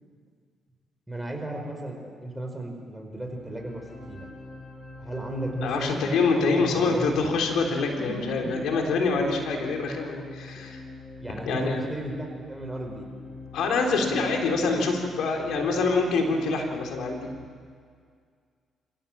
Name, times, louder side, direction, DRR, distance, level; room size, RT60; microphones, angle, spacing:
voice 1, 1.1-4.3 5.0-6.1 6.5-7.2 8.0-9.0 11.2-13.1, right 1 dB, 5° right, 2 dB, 4.9 m, -35 dB
sound 1, 3.1-17.5, left 3 dB, 30° left, 5.5 m, -44 dB
voice 2, 5.6-10.8 11.5-11.9 13.5-17.3, left 3 dB, 80° left, 2 dB, 3.6 m, -25 dB
27.5 x 16.5 x 7.4 m, 2.1 s
cardioid pair, 90°, 0 cm